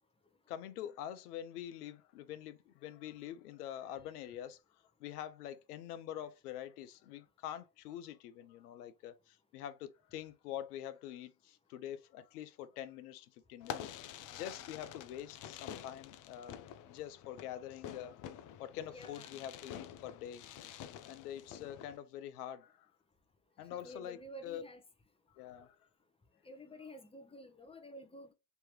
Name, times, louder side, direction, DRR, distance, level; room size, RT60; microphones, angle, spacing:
voice 1, 0.5-4.6 5.0-16.6 16.8-18.3 18.6-20.4 21.1-22.9 23.6-24.2 24.4-24.6 25.3-25.8, left 11 dB, 80° left, 0.8 m, -45 dB
Fireworks, 13.6-22.0, left 10 dB, 45° left, 0.5 m, -48 dB
voice 2, 18.9-19.4 23.6-24.8 26.4-28.3, equal, 10° left, 0.8 m, -51 dB
3.4 x 2.9 x 3.1 m
hypercardioid pair, 85°, 45 cm